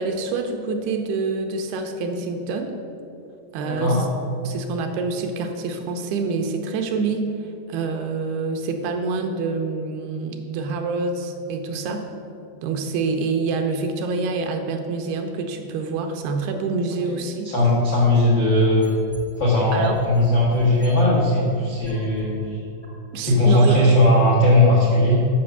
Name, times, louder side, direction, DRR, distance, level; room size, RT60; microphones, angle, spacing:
voice 1, 0.0-2.7 3.5-4.0 4.4-7.3 7.7-12.1 12.6-17.5 19.7-20.0 23.1-23.8, right 4 dB, 80° right, 5 dB, 2.5 m, -26 dB
voice 2, 3.6-4.0 17.0-17.1 17.4-18.9 19.4-22.6 23.2-25.2, left 1 dB, 75° left, -5 dB, 1.0 m, -18 dB
Wobbling high pitched snyth, 17.8-19.4 19.8-22.2 22.8-22.9, left 1 dB, 35° left, 0.8 m, -44 dB
8.5 x 6.3 x 6.6 m, 2.6 s
omnidirectional pair, 4.7 m